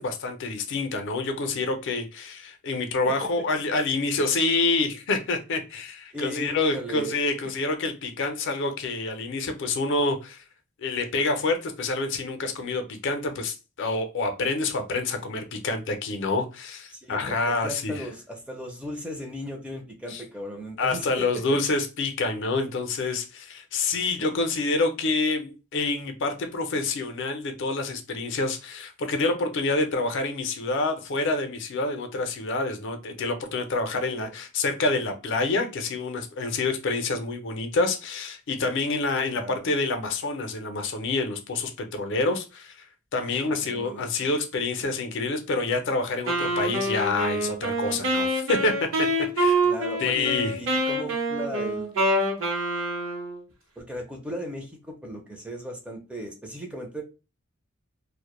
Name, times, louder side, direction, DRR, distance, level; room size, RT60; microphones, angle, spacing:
voice 1, 0.0-10.4 10.8-18.0 20.1-20.2 20.8-42.9 43.1-49.1 49.4-49.6 50.0-50.6, left 3 dB, 60° left, 0.5 m, -27 dB
voice 2, 6.1-7.2 16.9-21.6 24.2-24.4 34.1-34.3 39.3-39.7 43.2-44.1 49.6-51.9 53.8-57.0, equal, 5° right, 0.4 m, -37 dB
Wind instrument woodwind instrument, 46.3-53.4, right 1 dB, 70° right, 0.8 m, -26 dB
2.1 x 2.0 x 2.9 m
head